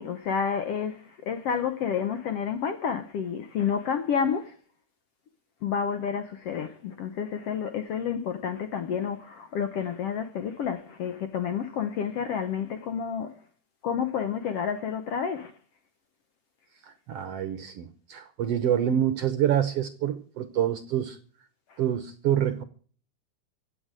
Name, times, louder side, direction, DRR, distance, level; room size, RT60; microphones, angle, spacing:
voice 1, 0.0-4.5 5.6-13.3 13.8-15.5 21.7-21.8, left 7 dB, 70° left, 1.5 m, -30 dB
voice 2, 16.8-21.2 21.8-22.6, right 10 dB, 70° right, 1.5 m, -27 dB
15.5 x 8.6 x 7.5 m
omnidirectional pair, 3.7 m